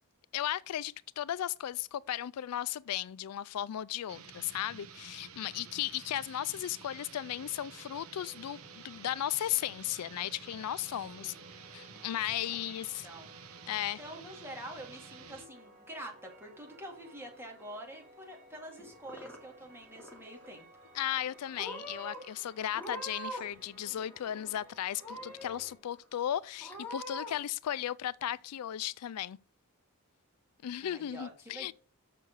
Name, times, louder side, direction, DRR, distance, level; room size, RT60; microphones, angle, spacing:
voice 1, 0.3-11.3 11.7-13.1 13.7-14.0 20.9-29.4 30.6-31.7, left 11 dB, 85° left, 0.4 m, -36 dB
sound 1, 4.1-15.5, right 6 dB, 70° right, 1.0 m, -51 dB
voice 2, 5.4-5.8 11.2-11.5 12.6-13.3 14.0-20.7 30.8-31.7, right 1 dB, 10° right, 2.5 m, -47 dB
sound 2, 6.4-25.7, right 1 dB, 45° right, 4.5 m, -58 dB
Purr / Meow, 18.8-19.6 19.9-20.5 21.2-21.3 21.6-22.2 22.7-23.6 23.9-24.6 25.0-25.6 26.0-26.1 26.6-27.3, equal, 10° left, 2.3 m, -43 dB
6.7 x 6.3 x 6.1 m
head